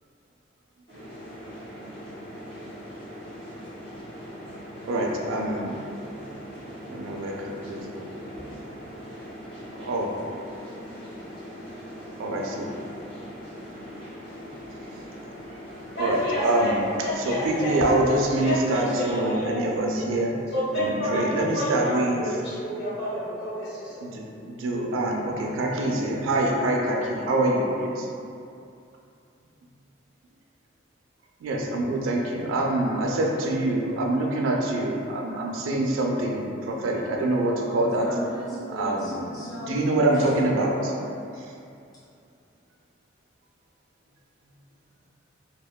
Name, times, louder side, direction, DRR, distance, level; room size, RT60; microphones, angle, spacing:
sound 1, 0.9-19.3, equal, 75° left, 1.4 m, -41 dB
voice 1, 4.8-5.8 6.9-8.1 9.2-9.3 9.7-10.1 12.2-12.7 15.5-15.6 16.0-16.8 17.2-20.4 20.8-22.4 24.0-28.1 31.4-38.1 38.7-40.8 41.3-41.5, right 1 dB, 90° right, 0 dB, 0.4 m, -25 dB
voice 2, 15.9-16.7 17.0-17.7 18.3-19.6 20.5-24.0, equal, 55° left, -12 dB, 1.2 m, -29 dB
voice 3, 38.0-39.9 40.1-40.3 40.8-40.9 41.9-42.0, equal, 20° left, -8 dB, 0.5 m, -37 dB
2.9 x 2.1 x 2.2 m, 2.5 s
head